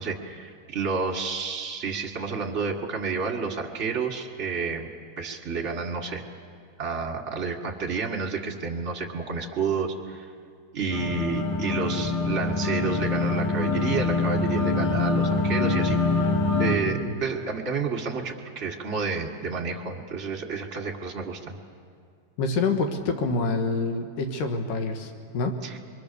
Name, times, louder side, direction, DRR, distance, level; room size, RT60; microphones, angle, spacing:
voice 1, 0.0-4.9 5.2-6.2 6.8-10.2 10.7-21.5 25.6-25.8, right 5 dB, 30° right, 1 dB, 1.4 m, -30 dB
sound 1, 10.9-16.8, left 3 dB, 65° left, 4.1 m, -25 dB
voice 2, 16.8-17.2 22.4-25.7, left 3 dB, 90° left, 5 dB, 2.9 m, -27 dB
27.5 x 22.5 x 6.9 m, 2.2 s
omnidirectional pair, 3.7 m